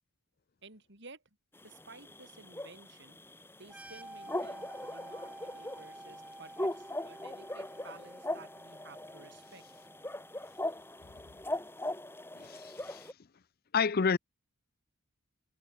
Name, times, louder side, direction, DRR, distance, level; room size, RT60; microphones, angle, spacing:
voice 1, 0.6-1.2 1.6-3.2 3.6-9.6, right 3 dB, 55° right, 5.0 m, -54 dB
sound 1, 1.6-13.1, left 1 dB, 10° left, 2.8 m, -40 dB
sound 2, 3.6-11.2, right 1 dB, 5° right, 3.5 m, -51 dB
voice 2, 12.4-13.0 13.7-14.2, left 5 dB, 45° left, 0.5 m, -29 dB
head